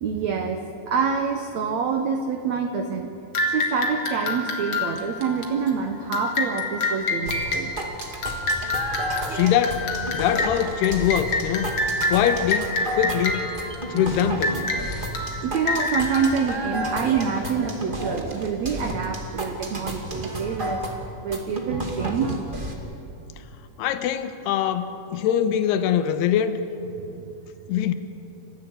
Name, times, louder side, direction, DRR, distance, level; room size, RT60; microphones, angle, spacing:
voice 1, 0.0-3.1 3.4-7.7 15.4-20.8 21.2-22.5 27.0-27.2, right 6 dB, 70° right, 5 dB, 1.6 m, -26 dB
sound 1, 3.3-17.5, left 2 dB, 45° left, 2.4 m, -28 dB
sound 2, 7.2-22.7, right 1 dB, 30° right, 1.0 m, -32 dB
voice 2, 9.3-11.7 12.1-13.5 13.9-14.7 23.8-26.6 27.7-27.9, left 9 dB, 85° left, 10 dB, 3.0 m, -23 dB
30.0 x 15.0 x 8.0 m, 2.9 s
omnidirectional pair, 4.7 m